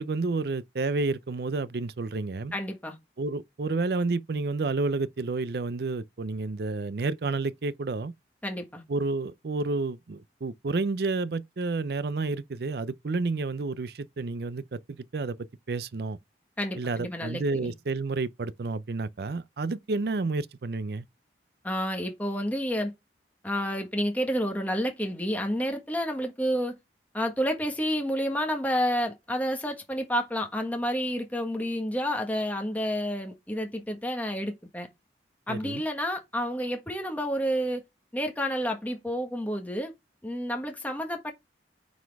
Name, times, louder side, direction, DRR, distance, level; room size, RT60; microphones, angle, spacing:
voice 1, 0.0-2.5 3.2-8.1 8.9-15.4 15.7-16.2 16.8-21.0 35.5-35.8, right 3 dB, 60° right, 0.5 m, -30 dB
voice 2, 2.5-3.0 8.4-8.8 16.6-17.7 21.6-22.9 23.4-26.8 27.1-34.9 35.5-37.8 38.1-39.9 40.2-41.3, equal, 10° left, 1.4 m, -30 dB
9.1 x 4.2 x 3.5 m
head